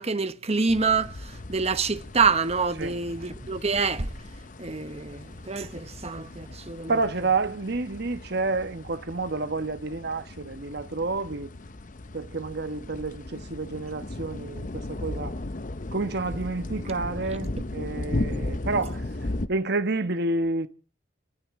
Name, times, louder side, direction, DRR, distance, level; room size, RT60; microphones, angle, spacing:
voice 1, 0.0-4.1 4.6-6.9, right 4 dB, 30° right, 1.1 m, -26 dB
sound 1, 0.7-19.5, left 2 dB, 40° left, 0.8 m, -36 dB
voice 2, 6.9-11.5 12.1-15.3 15.9-20.7, right 3 dB, 55° right, 1.2 m, -29 dB
28.5 x 13.5 x 3.7 m
head